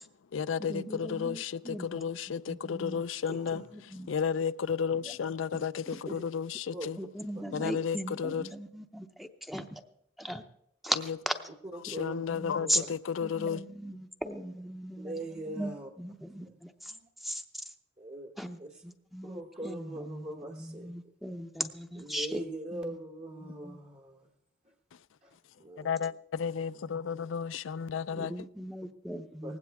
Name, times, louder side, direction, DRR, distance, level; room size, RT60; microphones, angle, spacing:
voice 1, 0.0-7.0 7.5-8.5 11.1-11.2 11.8-13.6 24.9-25.1 25.3-28.3, left 6 dB, 80° left, 0.4 m, -33 dB
voice 2, 0.6-2.0 2.5-3.0 3.5-4.1 5.5-5.6 5.9-6.2 7.0-9.8 10.2-10.4 10.8-11.3 12.3-12.8 13.2-17.7 18.4-22.4 22.7-23.0 23.4-23.8 28.1-29.6, equal, ahead, 0.7 m, -38 dB
voice 3, 11.9-12.2 12.6-12.9 15.0-15.9 16.4-16.5 16.9-17.1 18.0-18.3 18.6-18.7 19.2-20.9 22.0-24.3 24.6-24.7 25.2-25.9 29.4-29.6, right 2 dB, 35° right, 1.1 m, -41 dB
19.0 x 16.0 x 3.5 m
head